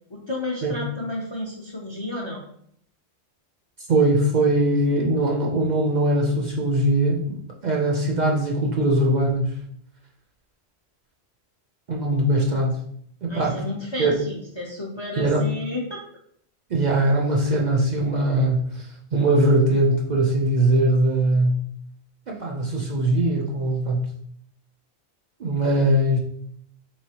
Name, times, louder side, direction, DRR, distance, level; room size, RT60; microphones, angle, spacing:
voice 1, 0.1-2.4 13.3-16.0, left 1 dB, 35° left, -2 dB, 0.5 m, -32 dB
voice 2, 3.9-7.4 7.6-9.5 11.9-12.8 13.2-13.6 14.0-14.2 15.2-15.5 16.7-18.8 19.1-21.6 22.3-24.1 25.4-26.2, right 1 dB, 50° right, -1 dB, 0.6 m, -21 dB
3.9 x 3.1 x 2.8 m, 0.67 s
omnidirectional pair, 1.1 m